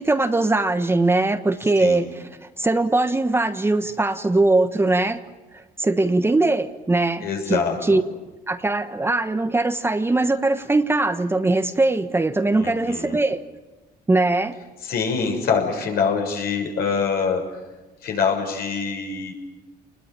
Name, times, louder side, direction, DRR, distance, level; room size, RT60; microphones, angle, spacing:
voice 1, 0.0-5.2 5.5-8.0 8.5-13.4 14.1-14.6, right 2 dB, 15° right, 9 dB, 1.2 m, -21 dB
voice 2, 7.2-8.0 12.5-13.2 14.8-17.4 18.0-19.3, left 5 dB, 65° left, 3 dB, 6.6 m, -24 dB
28.5 x 21.0 x 8.9 m, 1.2 s
cardioid pair, 110°, 17 cm